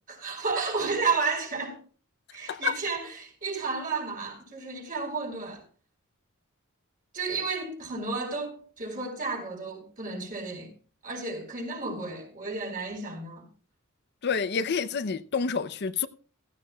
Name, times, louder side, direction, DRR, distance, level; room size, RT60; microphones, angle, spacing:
voice 1, 0.0-1.8 2.3-5.6 7.1-10.7 11.0-13.4, right 4 dB, 40° right, 4.3 m, -32 dB
voice 2, 14.2-16.1, left 6 dB, 50° left, 0.6 m, -28 dB
16.0 x 14.5 x 2.3 m
head